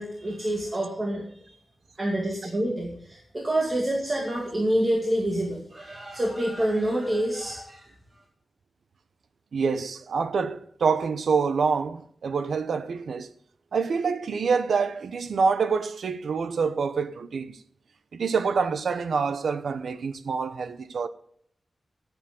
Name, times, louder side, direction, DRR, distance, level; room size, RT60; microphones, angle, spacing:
voice 1, 0.0-1.5 2.0-7.8, right 1 dB, 25° right, 2.2 m, -27 dB
voice 2, 9.5-13.3 13.7-17.6 18.1-21.1, right 5 dB, 90° right, 0.8 m, -26 dB
16.0 x 7.2 x 3.7 m
wide cardioid pair, 125°, 0 cm